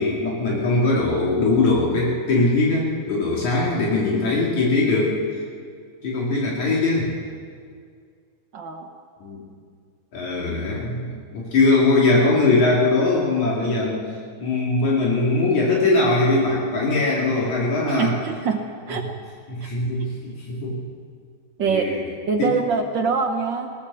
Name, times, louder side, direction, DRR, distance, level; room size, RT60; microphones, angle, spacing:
voice 1, 0.0-5.2 6.0-7.1 9.2-9.4 10.1-14.0 14.4-18.1 19.5-20.8 21.7-22.0 22.4-22.5, left 3 dB, 70° left, -4 dB, 4.0 m, -21 dB
voice 2, 8.5-8.9 17.9-18.6 18.9-19.1 19.6-19.7 21.6-21.8 22.3-23.7, right 5 dB, 80° right, 5 dB, 1.0 m, -24 dB
21.0 x 18.0 x 7.0 m, 2.1 s
omnidirectional pair, 3.6 m